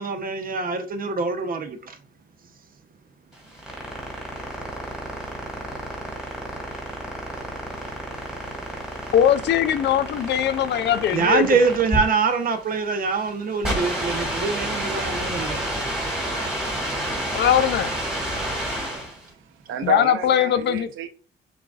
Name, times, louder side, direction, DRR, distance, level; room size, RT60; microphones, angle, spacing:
voice 1, 0.0-2.0 11.1-15.7, right 4 dB, 45° right, 0.8 m, -24 dB
sound 1, 3.3-19.2, right 1 dB, 5° right, 1.7 m, -30 dB
voice 2, 9.1-11.6 17.3-17.9 19.8-20.9, left 9 dB, 60° left, 0.5 m, -20 dB
voice 3, 19.1-21.1, right 7 dB, 85° right, 0.6 m, -32 dB
6.9 x 2.6 x 2.4 m
cardioid pair, 90°, 20 cm